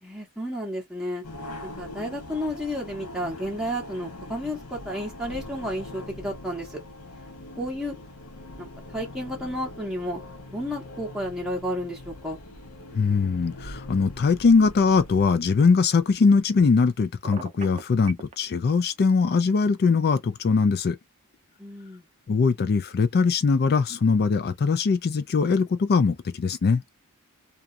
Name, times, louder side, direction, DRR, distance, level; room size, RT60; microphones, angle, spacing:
voice 1, 0.0-1.2 1.6-6.8 7.6-8.0 8.6-10.2 10.5-12.4 21.6-22.0, equal, ahead, 0.8 m, -32 dB
sound 1, 1.2-15.3, left 1 dB, 85° left, 0.8 m, -42 dB
voice 2, 12.9-21.0 22.3-26.8, left 4 dB, 45° left, 0.4 m, -21 dB
Telephone, 17.2-18.3, right 5 dB, 30° right, 0.4 m, -39 dB
2.4 x 2.3 x 2.5 m
head